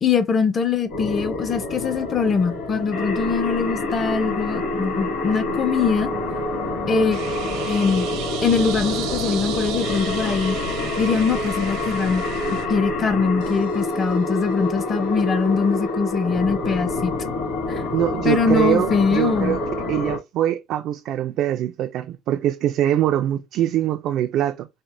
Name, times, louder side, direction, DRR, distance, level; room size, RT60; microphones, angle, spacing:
voice 1, 0.0-6.1 6.9-7.2 7.6-8.1 8.4-10.6 11.0-12.2 12.7-17.1 17.7-17.8 18.2-19.6, left 5 dB, 25° left, 0.5 m, -22 dB
sound 1, 0.9-20.2, left 2 dB, 80° left, 1.9 m, -27 dB
sound 2, 7.1-12.7, right 9 dB, 65° right, 0.7 m, -33 dB
voice 2, 17.9-19.6 19.9-24.7, right 12 dB, 45° right, 0.3 m, -23 dB
4.2 x 2.0 x 2.5 m
cardioid pair, 170°, 0 cm